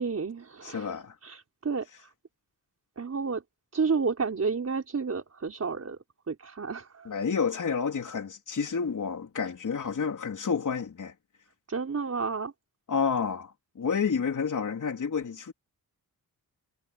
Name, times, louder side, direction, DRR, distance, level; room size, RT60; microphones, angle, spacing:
voice 1, 0.0-2.1 3.0-3.4 3.7-6.0 6.3-7.2 11.7-12.5, right 5 dB, 45° right, 5.3 m, -31 dB
voice 2, 0.6-1.2 7.1-11.1 12.9-15.5, left 6 dB, 55° left, 3.6 m, -30 dB
wide cardioid pair, 115°, 36 cm